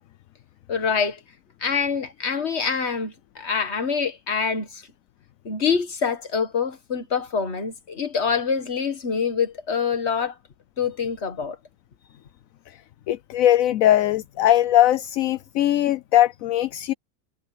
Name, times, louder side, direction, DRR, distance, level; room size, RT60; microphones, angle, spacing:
voice 1, 0.7-1.2 1.6-4.8 5.5-10.4 10.8-11.6, left 6 dB, 45° left, 2.0 m, -25 dB
voice 2, 13.1-16.9, left 12 dB, 70° left, 1.0 m, -20 dB
omnidirectional pair, 1.6 m